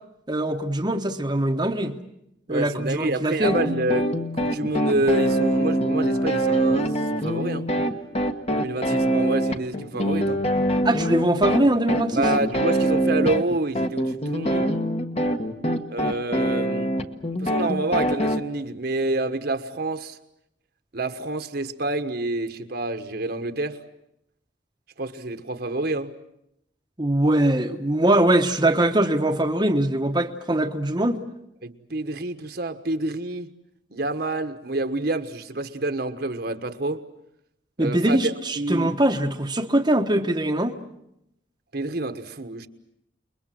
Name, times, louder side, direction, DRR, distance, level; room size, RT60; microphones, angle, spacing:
voice 1, 0.3-1.9 2.5-3.6 10.8-12.2 27.0-31.2 37.8-40.8, right 1 dB, 20° right, 1.1 m, -22 dB
voice 2, 2.5-7.7 8.5-10.4 12.1-14.7 15.9-17.0 17.4-20.2 20.9-23.8 25.0-26.1 31.6-33.5 33.9-37.0 37.8-39.0 41.7-42.7, right 2 dB, 55° right, 1.4 m, -28 dB
sound 1, 3.4-18.4, right 1 dB, 35° left, 1.4 m, -24 dB
29.5 x 22.0 x 7.7 m
head